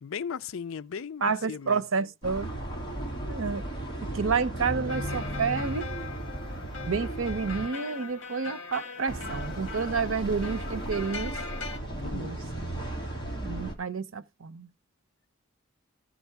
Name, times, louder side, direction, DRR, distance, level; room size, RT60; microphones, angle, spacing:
voice 1, 0.0-1.8 12.0-12.3, left 6 dB, 85° left, 0.5 m, -37 dB
voice 2, 1.2-2.5 3.3-3.6 4.1-5.9 6.9-11.4 12.0-12.4 13.4-14.7, right 5 dB, 85° right, 0.7 m, -30 dB
sound 1, 2.2-7.7 9.1-13.7, right 1 dB, 25° left, 2.5 m, -35 dB
sound 2, 4.9-11.8, left 4 dB, 60° left, 1.9 m, -41 dB
14.0 x 5.1 x 4.6 m
head